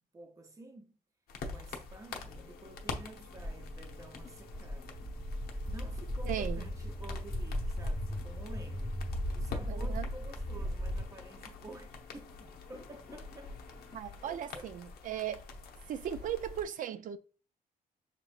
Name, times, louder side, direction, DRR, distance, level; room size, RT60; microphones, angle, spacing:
voice 1, 0.1-1.0 1.5-5.0 5.7-8.9 9.3-13.5 14.2-14.7, right 2 dB, 20° right, 0.6 m, -51 dB
sound 1, 1.3-16.6, left 4 dB, 90° left, 0.8 m, -46 dB
sound 2, 2.3-14.0, left 5 dB, 20° left, 0.5 m, -58 dB
Walk footsteps, 3.3-11.0, equal, ahead, 1.1 m, -37 dB
voice 2, 6.3-6.7 9.7-10.1 13.9-15.4 15.9-17.2, right 10 dB, 60° right, 0.4 m, -37 dB
6.3 x 2.9 x 2.4 m
cardioid pair, 165°, 16 cm